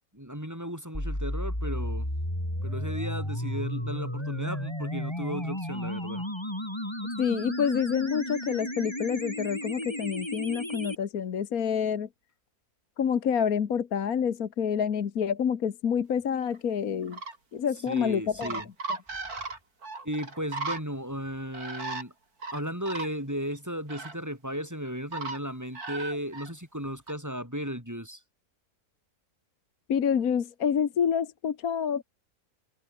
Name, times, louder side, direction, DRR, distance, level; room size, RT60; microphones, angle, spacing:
voice 1, 0.0-2.1 2.6-6.3 17.9-18.7 20.0-22.1 22.5-28.2, equal, 10° right, 6.9 m, -35 dB
sound 1, 0.9-11.0, left 1 dB, 15° left, 7.4 m, -33 dB
voice 2, 7.2-12.1 13.0-17.2 17.5-18.6 29.9-32.0, left 7 dB, 60° left, 1.7 m, -28 dB
sound 2, 16.4-16.6 17.0-17.4 17.9-18.1 18.4-20.8 21.5-22.0 22.4-23.1 23.5-23.6 23.9-24.2 25.1-25.4 25.8-26.5 27.1-27.2, right 3 dB, 65° right, 4.3 m, -36 dB
omnidirectional pair, 1.7 m